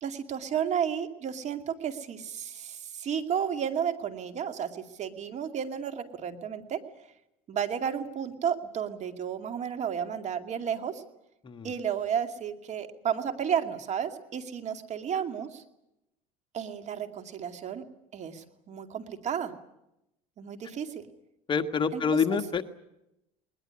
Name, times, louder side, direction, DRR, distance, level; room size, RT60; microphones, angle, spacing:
voice 1, 0.0-6.8 7.5-11.0 11.6-15.6 16.5-17.8 18.1-19.5 20.4-21.0 21.9-22.0, right 8 dB, 45° right, 8 dB, 2.4 m, -32 dB
voice 2, 21.5-22.6, left 6 dB, 30° left, 7 dB, 1.5 m, -27 dB
20.5 x 20.5 x 9.8 m, 0.87 s
supercardioid pair, 110°, 17 cm